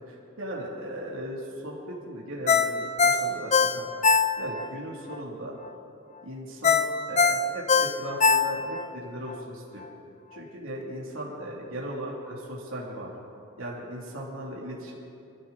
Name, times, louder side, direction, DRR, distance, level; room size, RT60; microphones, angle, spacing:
voice 1, 0.1-3.9 4.4-5.5 6.2-9.8 10.3-13.1 13.6-15.0, right 1 dB, 70° right, -4 dB, 3.0 m, -37 dB
Ringtone, 2.5-4.7 5.1-5.2 6.6-8.9 9.3-9.4, left 5 dB, 35° left, 0.6 m, -22 dB
23.0 x 15.0 x 4.1 m, 2.6 s
head